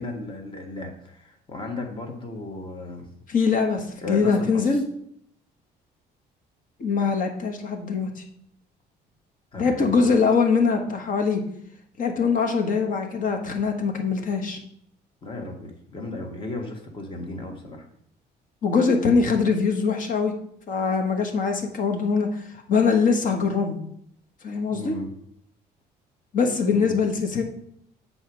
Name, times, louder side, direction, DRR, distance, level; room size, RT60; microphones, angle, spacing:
voice 1, 0.0-3.1 4.0-4.8 9.5-10.1 15.2-17.9 24.7-25.1 26.7-27.0, left 2 dB, 30° left, 2 dB, 1.6 m, -35 dB
voice 2, 3.3-4.8 6.8-8.2 9.6-11.4 12.0-14.6 18.6-20.3 20.7-23.8 24.4-24.9 26.3-27.4, left 5 dB, 50° left, 4 dB, 1.4 m, -22 dB
7.9 x 4.1 x 6.2 m, 0.70 s
cardioid pair, 110°, 17 cm